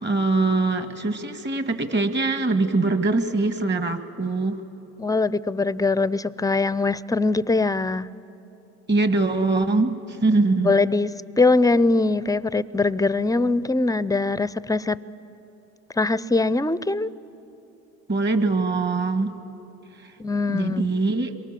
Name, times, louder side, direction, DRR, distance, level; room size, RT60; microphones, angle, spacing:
voice 1, 0.0-4.6 8.9-10.8 18.1-19.4 20.5-21.4, right 3 dB, 35° right, 10 dB, 1.8 m, -23 dB
voice 2, 5.0-8.1 10.6-11.1 11.4-15.0 16.0-17.1 20.2-20.9, left 3 dB, 10° left, 18 dB, 0.5 m, -22 dB
27.5 x 23.5 x 7.6 m, 3.0 s
supercardioid pair, 75°, 33 cm